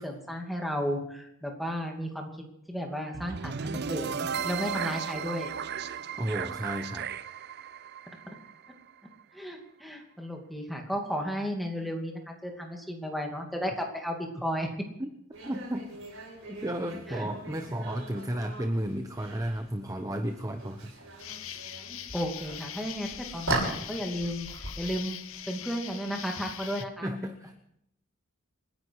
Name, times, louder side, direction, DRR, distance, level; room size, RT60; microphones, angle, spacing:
voice 1, 0.0-2.3 2.7-5.5 9.3-14.7 17.1-17.3 22.1-24.5 24.8-25.2 25.5-27.1, equal, ahead, 1 dB, 2.5 m, -34 dB
sound 1, 3.1-9.2, right 7 dB, 50° right, 0.5 m, -35 dB
voice 2, 6.2-7.1 15.0-15.1 15.5-15.9 16.5-20.9 27.0-27.6, right 1 dB, 15° right, 6 dB, 0.9 m, -33 dB
sound 2, 15.3-26.6, right 2 dB, 80° right, 6.7 m, -39 dB
Insect, 21.2-26.8, left 11 dB, 75° left, 0.9 m, -42 dB
28.0 x 10.5 x 4.8 m, 0.78 s
head